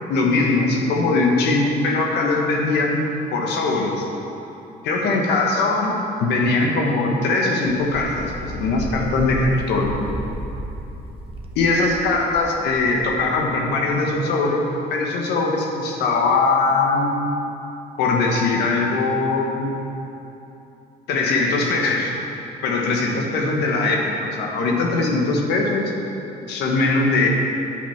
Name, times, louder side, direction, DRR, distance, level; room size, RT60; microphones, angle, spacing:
voice 1, 0.1-3.0 3.3-4.0 4.8-10.0 11.5-14.6 14.9-17.1 18.0-19.8 21.1-22.2 22.6-25.9 26.5-27.3, left 3 dB, 80° left, 1 dB, 1.5 m, -21 dB
Wind, 7.7-13.6, right 1 dB, 35° right, 1.3 m, -34 dB
9.0 x 8.5 x 5.8 m, 2.9 s
cardioid pair, 110°, 17 cm